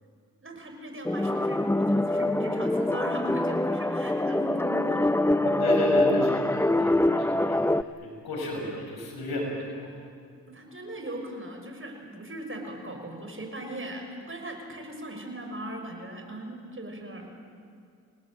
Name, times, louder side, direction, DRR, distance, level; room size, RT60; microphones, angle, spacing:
voice 1, 0.4-5.2 10.5-17.3, right 1 dB, 35° right, 3 dB, 6.6 m, -39 dB
sound 1, 1.0-7.8, left 1 dB, 5° left, 0.8 m, -24 dB
voice 2, 5.4-7.6 8.0-9.9, left 1 dB, 85° left, 1 dB, 5.7 m, -32 dB
28.0 x 18.5 x 8.9 m, 2.3 s
supercardioid pair, 40°, 36 cm